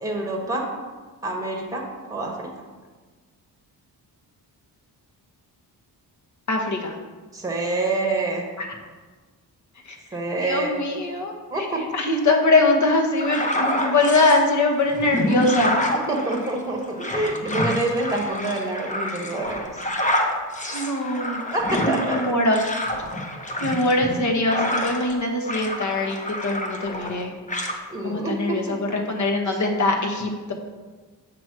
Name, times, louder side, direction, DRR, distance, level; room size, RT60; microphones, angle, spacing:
voice 1, 0.0-0.7 1.2-2.7 7.3-8.5 10.1-10.7 11.5-11.9 15.9-19.8 21.5-22.3 27.9-28.8, right 2 dB, 10° right, 0 dB, 1.3 m, -27 dB
voice 2, 6.5-7.0 8.6-8.7 9.9-10.0 10.3-11.7 11.9-15.9 20.7-21.4 22.1-22.6 23.6-27.3 28.0-30.5, left 2 dB, 45° left, 2 dB, 1.1 m, -22 dB
sound 1, 13.1-14.4 14.9-25.2 25.4-27.2 27.5-27.8, left 1 dB, 20° left, 0.8 m, -27 dB
7.8 x 3.0 x 6.0 m, 1.4 s
cardioid pair, 110°, 40 cm